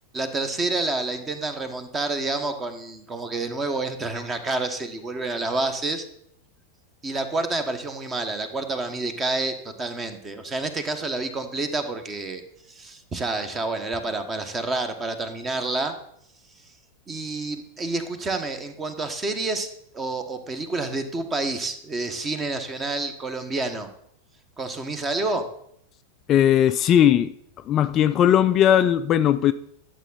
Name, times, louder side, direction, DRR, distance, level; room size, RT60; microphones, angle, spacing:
voice 1, 0.1-6.1 7.0-12.4 12.7-15.9 17.1-23.9 24.6-25.5, right 2 dB, 20° right, 8 dB, 1.3 m, -28 dB
voice 2, 26.3-27.3 27.7-29.5, left 10 dB, 30° left, 12 dB, 0.3 m, -18 dB
11.5 x 7.5 x 4.1 m, 0.71 s
figure-of-eight pair, 90°, 0 cm